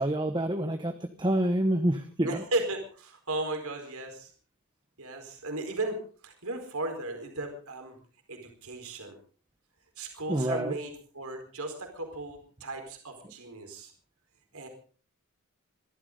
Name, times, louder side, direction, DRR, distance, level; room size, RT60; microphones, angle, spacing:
voice 1, 0.0-2.4 10.3-10.7, right 1 dB, 20° right, 7 dB, 1.2 m, -27 dB
voice 2, 2.2-4.3 5.0-6.0 6.2-8.0 8.3-9.2 10.0-13.9 14.5-14.7, right 2 dB, 75° right, 4 dB, 4.6 m, -35 dB
25.5 x 13.5 x 3.9 m, 0.42 s
head